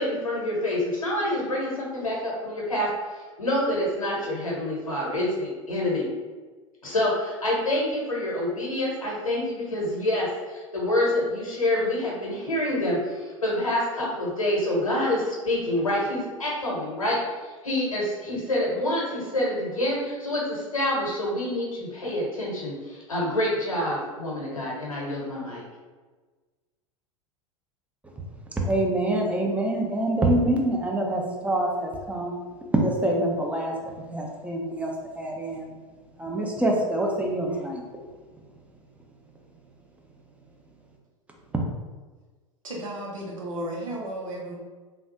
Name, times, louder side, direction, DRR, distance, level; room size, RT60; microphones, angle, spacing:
voice 1, 0.0-2.9 3.4-6.1 6.8-25.6, left 1 dB, 85° left, -3 dB, 1.0 m, -27 dB
voice 2, 28.5-32.4 32.7-35.7 36.2-37.8 41.5-41.6, right 1 dB, 10° right, 0 dB, 0.6 m, -26 dB
voice 3, 42.6-44.6, right 1 dB, 75° right, -3 dB, 0.9 m, -34 dB
3.3 x 2.3 x 2.7 m, 1.3 s
figure-of-eight pair, 85°, 17 cm